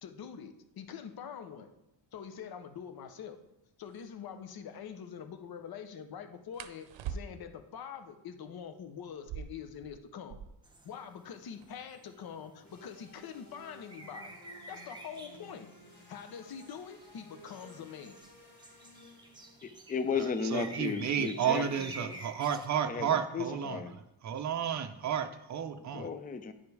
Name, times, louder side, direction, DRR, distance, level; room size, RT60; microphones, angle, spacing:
voice 1, 0.0-1.7 2.1-3.4 3.8-10.4 10.8-14.3 14.7-15.7 16.1-18.2, left 7 dB, 50° left, 0.7 m, -45 dB
sound 1, 3.9-4.1 6.5-7.7 9.1-10.8 11.1-11.2 11.4-11.9 12.6-15.1 16.1-16.4 16.9-17.3 17.7-18.4, right 7 dB, 75° right, 0.7 m, -45 dB
sound 2, 10.6-22.7, right 2 dB, 10° right, 0.8 m, -51 dB
sound 3, 12.6-19.7, left 1 dB, 85° left, 3.0 m, -56 dB
voice 2, 19.6-22.2 22.8-24.0 25.9-26.5, left 5 dB, 20° left, 0.4 m, -35 dB
voice 3, 20.2-26.1, right 8 dB, 40° right, 0.6 m, -32 dB
9.9 x 5.1 x 4.7 m
wide cardioid pair, 150°, 47 cm